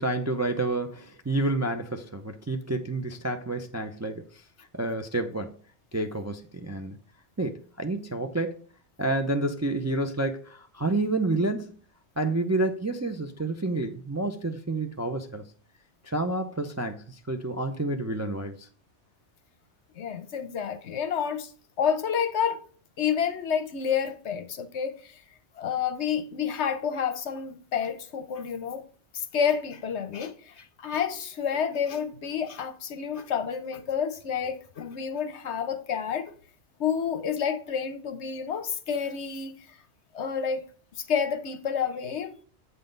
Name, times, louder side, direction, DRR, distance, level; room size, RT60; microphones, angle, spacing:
voice 1, 0.0-4.4 4.7-5.6 5.9-7.0 7.4-8.6 9.0-11.7 12.2-15.5 16.0-18.7, right 2 dB, 25° right, 0.3 m, -29 dB
voice 2, 20.0-21.5 21.8-22.6 23.0-25.2 25.6-28.8 29.1-36.3 36.8-39.8 40.1-40.6 41.0-42.4, left 7 dB, 75° left, 1.1 m, -29 dB
7.9 x 3.9 x 5.2 m
omnidirectional pair, 1.2 m